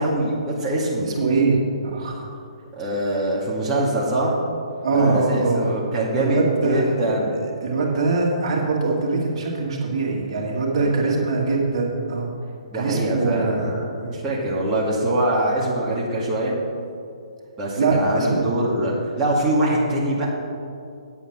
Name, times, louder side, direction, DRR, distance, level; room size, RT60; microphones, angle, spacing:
voice 1, 0.0-1.1 2.8-4.3 4.9-7.4 10.8-11.2 12.7-13.9 14.1-16.6 17.6-20.3, right 1 dB, 20° right, -6 dB, 2.1 m, -23 dB
voice 2, 1.0-2.2 4.8-5.7 6.2-6.9 7.3-12.3 12.7-13.7 14.0-14.2 17.8-18.5, right 3 dB, 50° right, -2 dB, 2.4 m, -22 dB
9.3 x 8.2 x 6.1 m, 2.4 s
figure-of-eight pair, 135°, 4 cm